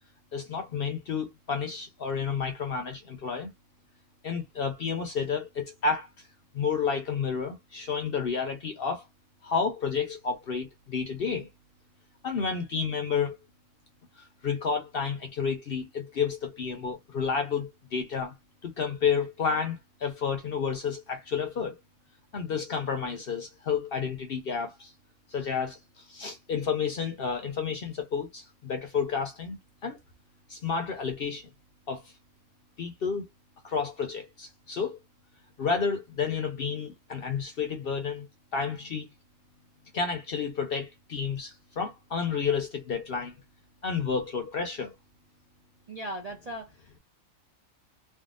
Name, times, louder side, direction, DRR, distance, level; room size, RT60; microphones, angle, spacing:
voice 1, 0.3-3.5 4.2-6.3 6.5-9.1 9.4-11.5 12.2-13.4 14.2-18.3 18.6-21.7 22.3-24.9 25.3-30.0 30.5-31.5 31.9-32.1 32.8-33.3 33.6-35.0 35.6-38.3 38.5-39.1 39.9-43.4 43.8-44.9, left 6 dB, 55° left, 0.7 m, -31 dB
voice 2, 45.9-47.0, right 1 dB, 45° right, 0.5 m, -38 dB
3.5 x 2.3 x 2.4 m
omnidirectional pair, 1.4 m